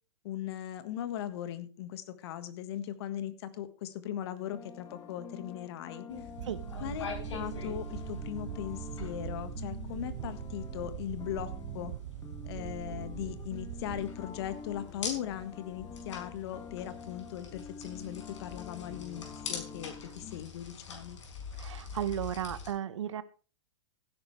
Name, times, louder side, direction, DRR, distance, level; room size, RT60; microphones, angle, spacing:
voice 1, 0.2-6.1 6.8-11.9 12.4-21.2, left 11 dB, 55° left, 11 dB, 1.7 m, -39 dB
sound 1, 4.2-20.4, left 5 dB, 25° left, 2.1 m, -48 dB
sound 2, 6.1-22.7, left 5 dB, 75° left, 5.3 m, -45 dB
sound 3, 6.4-14.1, right 15 dB, 55° right, 0.5 m, -41 dB
voice 2, 21.6-23.2, right 10 dB, 75° right, 15 dB, 1.0 m, -34 dB
16.0 x 10.5 x 3.3 m, 0.36 s
hypercardioid pair, 115°, 16 cm